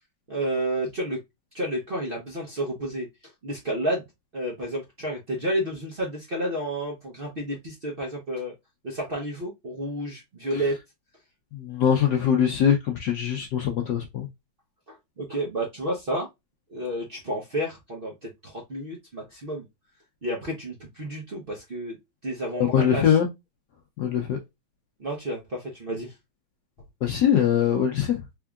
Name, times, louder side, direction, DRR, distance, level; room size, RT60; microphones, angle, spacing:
voice 1, 0.3-1.2 1.5-3.1 3.4-4.0 4.3-8.5 8.8-10.8 15.2-16.3 16.7-19.6 20.2-22.0 22.2-23.2 25.0-26.1, right 1 dB, 85° right, 0.4 m, -30 dB
voice 2, 11.5-14.3 22.6-23.3 24.0-24.4 27.0-28.2, left 8 dB, 70° left, 1.0 m, -22 dB
3.6 x 3.5 x 2.3 m
omnidirectional pair, 2.3 m